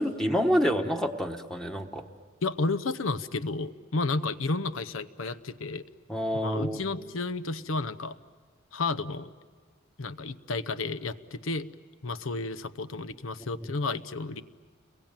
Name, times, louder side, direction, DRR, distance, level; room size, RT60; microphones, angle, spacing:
voice 1, 0.0-2.0 6.1-6.9 13.6-13.7, equal, 5° left, 4 dB, 1.2 m, -27 dB
voice 2, 2.4-5.8 6.3-8.2 8.7-9.3 10.0-11.7 12.0-14.4, left 3 dB, 80° left, 14 dB, 0.8 m, -32 dB
29.5 x 22.5 x 9.0 m, 1.5 s
head